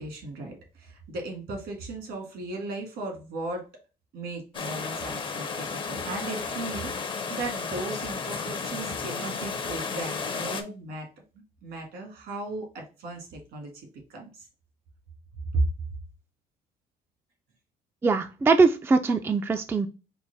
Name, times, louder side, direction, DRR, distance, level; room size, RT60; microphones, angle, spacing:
voice 1, 0.0-3.7 4.1-11.1 11.6-14.3 15.5-15.6, right 2 dB, 75° right, 2 dB, 1.9 m, -35 dB
sound 1, 4.5-10.6, left 5 dB, 30° left, 0.6 m, -33 dB
voice 2, 18.0-19.9, right 4 dB, 15° right, 8 dB, 0.3 m, -22 dB
4.6 x 2.1 x 4.0 m, 0.31 s
cardioid pair, 110°, 17 cm